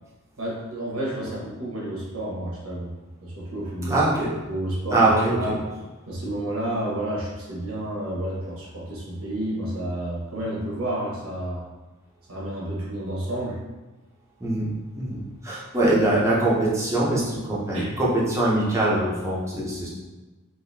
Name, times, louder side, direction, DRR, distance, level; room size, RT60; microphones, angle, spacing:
voice 1, 0.4-2.9 3.2-4.0 4.4-5.7 6.1-11.6 12.3-13.6 17.7-17.9, right 1 dB, 80° right, -5 dB, 1.2 m, -30 dB
voice 2, 3.8-4.3 4.9-5.5 14.4-14.7 15.0-19.9, right 2 dB, 15° right, -6 dB, 0.8 m, -23 dB
3.7 x 2.7 x 2.7 m, 1.2 s
head